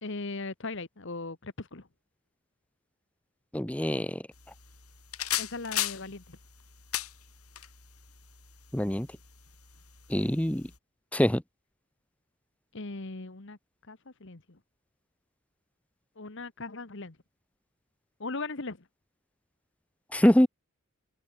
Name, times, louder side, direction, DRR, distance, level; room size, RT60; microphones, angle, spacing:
voice 1, 0.0-1.9 5.4-6.4 12.7-13.6 13.9-14.6 16.2-17.2 18.2-18.8, left 3 dB, 55° left, 1.4 m, -38 dB
voice 2, 3.5-4.2 8.7-9.1 10.1-10.7 11.1-11.4 20.1-20.5, equal, 5° left, 0.7 m, -24 dB
sound 1, 4.3-10.8, left 12 dB, 80° left, 7.4 m, -38 dB
head